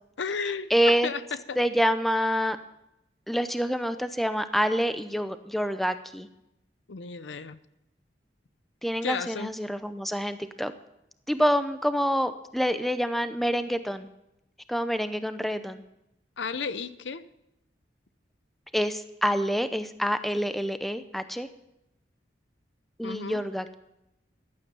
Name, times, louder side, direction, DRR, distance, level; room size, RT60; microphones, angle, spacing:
voice 1, 0.2-1.6 6.9-7.6 9.0-9.5 16.4-17.2 23.0-23.4, left 5 dB, 80° left, 0.7 m, -33 dB
voice 2, 0.7-1.1 1.6-2.6 3.3-6.3 8.8-10.7 11.3-14.1 14.7-15.8 18.7-21.5 23.0-23.7, equal, ahead, 0.6 m, -27 dB
14.5 x 12.0 x 6.9 m
head